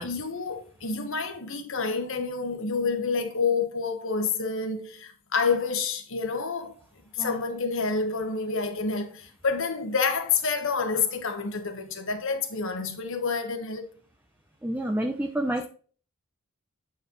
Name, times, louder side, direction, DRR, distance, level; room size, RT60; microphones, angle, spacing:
voice 1, 0.0-6.7 7.1-13.8, left 4 dB, 60° left, 1.4 m, -28 dB
voice 2, 14.6-15.7, right 1 dB, 10° right, 0.7 m, -28 dB
8.6 x 4.9 x 3.1 m
head